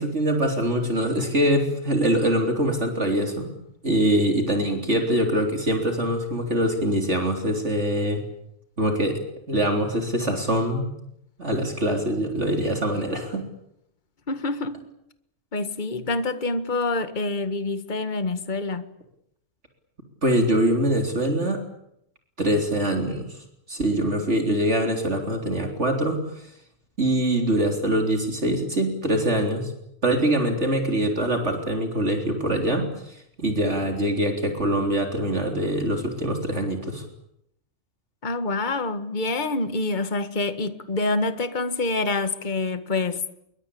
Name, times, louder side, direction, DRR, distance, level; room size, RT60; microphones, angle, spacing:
voice 1, 0.0-3.5 3.8-8.2 8.8-9.2 9.5-10.9 11.4-13.5 20.2-21.6 22.4-23.3 23.7-26.2 27.0-29.7 30.0-37.0, right 1 dB, 50° right, 4.0 m, -23 dB
voice 2, 14.3-14.8 15.5-18.9 38.2-43.3, left 3 dB, 35° left, 1.8 m, -26 dB
26.5 x 24.0 x 8.6 m
omnidirectional pair, 1.5 m